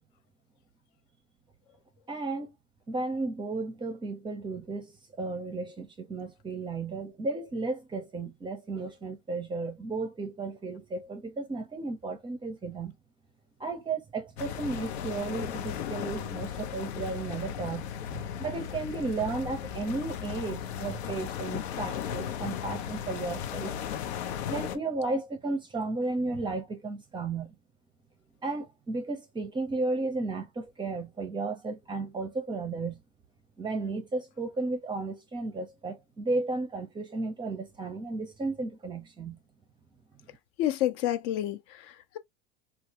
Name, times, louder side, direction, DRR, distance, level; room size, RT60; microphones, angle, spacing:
voice 1, 2.1-2.5 2.9-13.0 13.6-23.8 24.5-27.6 28.4-33.0 33.6-39.4, right 3 dB, 15° right, 0.6 m, -34 dB
sound 1, 14.4-24.8, left 9 dB, 85° left, 0.8 m, -36 dB
voice 2, 40.6-42.2, left 12 dB, 50° left, 0.6 m, -29 dB
3.2 x 2.3 x 2.8 m
supercardioid pair, 140°, 32 cm